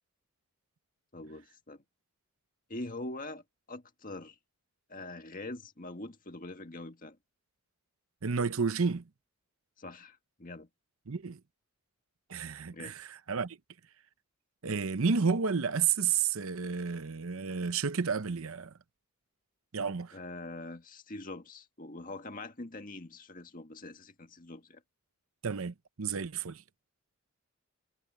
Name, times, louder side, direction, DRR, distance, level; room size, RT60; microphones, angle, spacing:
voice 1, 1.1-1.8 2.7-3.4 3.7-4.4 4.9-7.2 9.8-10.7 12.7-12.9 20.1-24.8, left 2 dB, 40° left, 1.8 m, -43 dB
voice 2, 8.2-9.0 11.1-11.4 12.3-13.6 14.6-18.7 19.7-20.2 25.4-26.6, right 5 dB, 65° right, 0.7 m, -31 dB
head